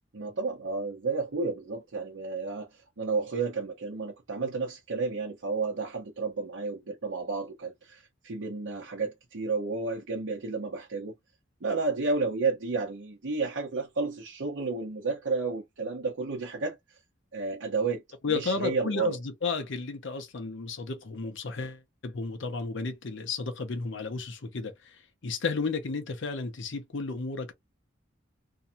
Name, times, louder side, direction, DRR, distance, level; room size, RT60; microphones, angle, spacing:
voice 1, 0.1-11.1 11.6-16.8 17.3-18.0 18.3-19.2, right 4 dB, 70° right, 0.8 m, -31 dB
voice 2, 18.2-25.0 25.2-27.5, left 4 dB, 70° left, 0.7 m, -33 dB
2.7 x 2.2 x 2.6 m
head